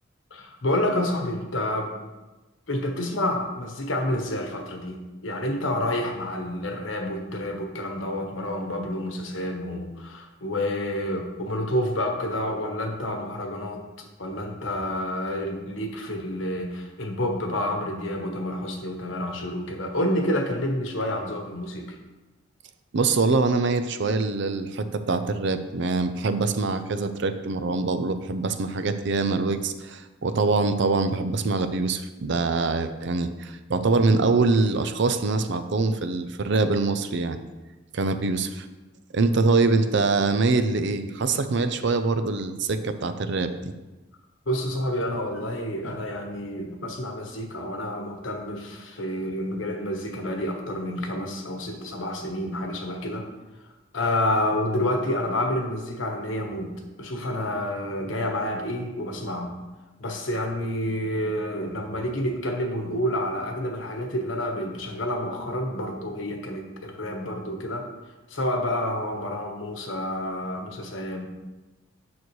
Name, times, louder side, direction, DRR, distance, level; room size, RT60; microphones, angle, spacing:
voice 1, 0.3-1.9 2.7-13.8 14.2-22.0 44.5-53.2 53.9-59.5 60.0-67.9 68.3-71.3, left 1 dB, 70° left, 3 dB, 1.2 m, -29 dB
voice 2, 22.9-37.4 37.9-38.7 39.1-43.7, right 3 dB, 60° right, 9 dB, 0.5 m, -24 dB
9.4 x 6.1 x 3.1 m, 1.1 s
head